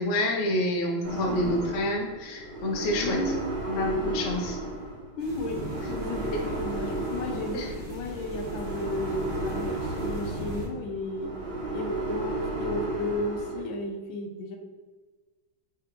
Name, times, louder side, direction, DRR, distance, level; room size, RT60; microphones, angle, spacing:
voice 1, 0.0-3.2 3.6-4.6 7.5-7.7, left 1 dB, 65° left, 1 dB, 0.7 m, -28 dB
sound 1, 1.0-13.6, right 1 dB, 60° right, 2.0 m, -34 dB
voice 2, 1.3-1.7 2.9-3.5 5.2-11.3 11.7-14.6, left 1 dB, 85° left, 3 dB, 1.4 m, -34 dB
sound 2, 5.2-10.7, right 1 dB, 35° right, 1.3 m, -40 dB
4.9 x 3.5 x 2.9 m, 1.3 s
omnidirectional pair, 2.2 m